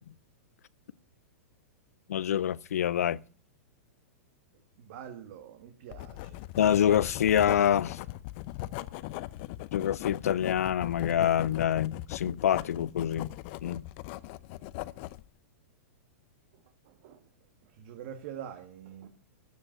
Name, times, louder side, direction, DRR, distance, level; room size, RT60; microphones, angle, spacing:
voice 1, 2.1-3.2 6.6-8.0 9.7-13.3 13.6-13.8, left 10 dB, 85° left, 0.5 m, -26 dB
voice 2, 4.8-6.4 16.9-17.2 17.8-19.1, right 9 dB, 55° right, 1.7 m, -44 dB
Writing, 5.9-15.2, left 17 dB, 50° left, 0.7 m, -39 dB
13.5 x 7.8 x 7.6 m
hypercardioid pair, 130°, 8 cm